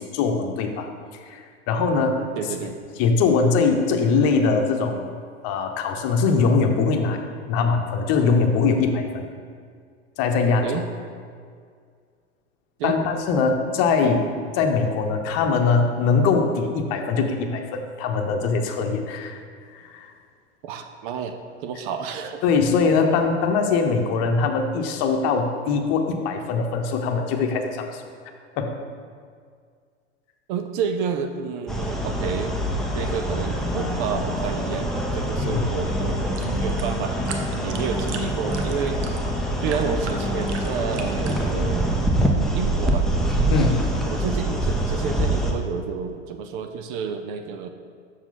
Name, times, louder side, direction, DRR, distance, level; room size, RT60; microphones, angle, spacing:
voice 1, 0.0-2.2 3.0-5.1 5.4-7.2 7.5-9.3 10.2-10.8 12.8-14.3 14.5-19.4 19.7-20.1 22.4-28.0 28.6-28.7 35.4-35.7 43.5-43.8, left 4 dB, 45° left, 4 dB, 0.9 m, -22 dB
voice 2, 2.4-2.8 10.6-10.9 12.8-13.0 20.6-21.3 21.6-22.4 30.5-32.6 32.9-37.2 37.6-39.0 39.6-42.0 42.5-43.1 44.0-47.7, right 6 dB, 45° right, 7 dB, 0.6 m, -30 dB
sound 1, 31.7-45.5, right 1 dB, ahead, 0.7 m, -25 dB
sound 2, 36.1-41.8, right 5 dB, 70° right, 0.9 m, -39 dB
7.1 x 6.4 x 3.9 m, 2.1 s
hypercardioid pair, 95°, 35 cm